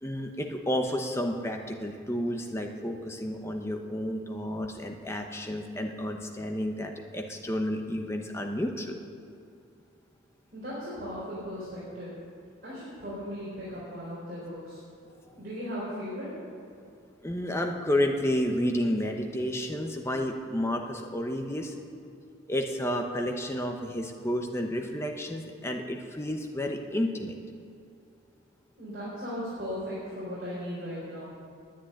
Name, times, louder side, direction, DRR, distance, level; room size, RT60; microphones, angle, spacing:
voice 1, 0.0-9.0 15.4-15.5 17.2-21.7 22.5-27.4, left 1 dB, 15° left, 3 dB, 0.9 m, -31 dB
voice 2, 10.5-12.2 12.6-14.8 15.3-16.3 28.8-31.3, equal, 50° right, -9 dB, 4.1 m, -37 dB
10.5 x 9.0 x 9.8 m, 2.5 s
head